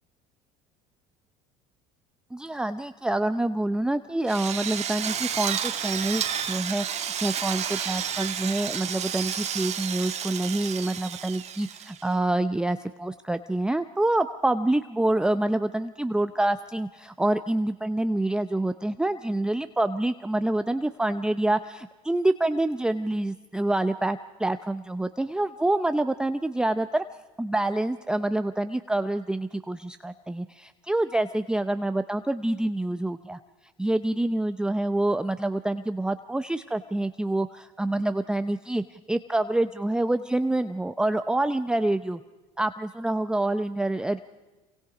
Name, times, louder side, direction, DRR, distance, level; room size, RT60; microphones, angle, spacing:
voice 1, 2.3-27.0 27.4-33.4 33.8-42.2 42.6-44.2, right 1 dB, 5° right, 10 dB, 0.6 m, -27 dB
Drill, 4.3-12.1, right 8 dB, 40° right, 1.7 m, -31 dB
28.0 x 23.5 x 5.0 m, 1.2 s
supercardioid pair, 95°, 17 cm